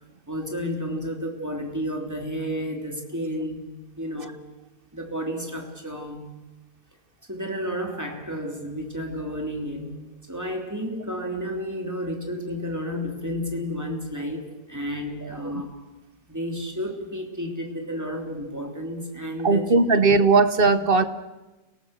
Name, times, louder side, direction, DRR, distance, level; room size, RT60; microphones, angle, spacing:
voice 1, 0.3-4.4 4.9-6.4 7.3-10.0 10.3-15.8 16.3-19.8, equal, 10° right, 2 dB, 3.0 m, -31 dB
voice 2, 15.2-15.6 19.4-21.0, right 3 dB, 40° right, 11 dB, 0.9 m, -19 dB
29.5 x 18.5 x 6.6 m, 1.1 s
omnidirectional pair, 1.8 m